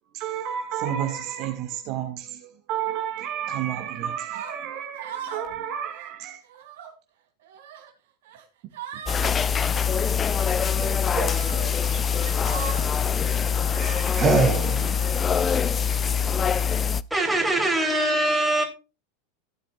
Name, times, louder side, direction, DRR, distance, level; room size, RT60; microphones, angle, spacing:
voice 1, 0.1-6.4, right 10 dB, 50° right, 2.0 m, -31 dB
sound 1, 4.2-4.6 5.0-5.5 5.8-6.1 6.4-6.9 7.4-7.9 8.2-8.4 8.7-9.3 10.4-10.5 11.2-11.6 12.0-12.9 13.6-14.1, right 9 dB, 70° right, 3.3 m, -38 dB
sound 2, 9.1-17.0, left 7 dB, 25° left, 0.4 m, -24 dB
voice 2, 10.8-11.7 14.1-15.2, right 5 dB, 30° right, 3.1 m, -26 dB
voice 3, 17.1-18.6, right 1 dB, 5° right, 3.5 m, -22 dB
15.5 x 9.0 x 2.5 m
hypercardioid pair, 90°, 0 cm